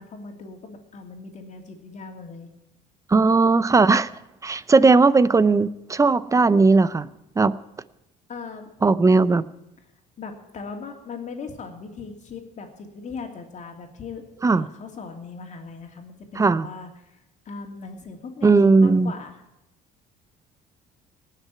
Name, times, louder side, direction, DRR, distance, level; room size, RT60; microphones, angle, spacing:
voice 1, 0.0-2.5 8.3-8.7 9.0-9.2 10.2-14.2 14.5-17.2 17.4-19.4, left 4 dB, 45° left, 5 dB, 2.9 m, -39 dB
voice 2, 3.1-4.1 4.4-7.1 7.4-7.5 8.8-9.4 14.4-14.7 16.4-16.7 18.4-19.1, right 3 dB, 20° right, 17 dB, 0.6 m, -17 dB
18.5 x 6.7 x 9.4 m, 0.89 s
cardioid pair, 110°, 17 cm